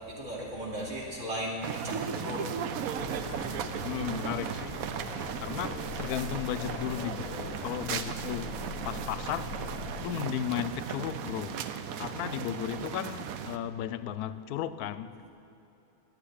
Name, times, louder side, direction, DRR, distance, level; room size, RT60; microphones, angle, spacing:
voice 1, 0.1-2.8 3.2-3.9, equal, 55° right, 2.9 m, -37 dB
sound 1, 1.6-13.6, right 8 dB, 75° right, 1.1 m, -36 dB
Acoustic guitar / Strum, 2.2-7.0, equal, 5° right, 0.7 m, -48 dB
sound 2, 3.0-10.1, left 7 dB, 70° left, 0.9 m, -43 dB
voice 2, 3.8-4.8 5.4-9.7 10.0-11.6 12.0-15.3, left 10 dB, 90° left, 1.1 m, -35 dB
11.0 x 8.3 x 10.0 m
omnidirectional pair, 1.6 m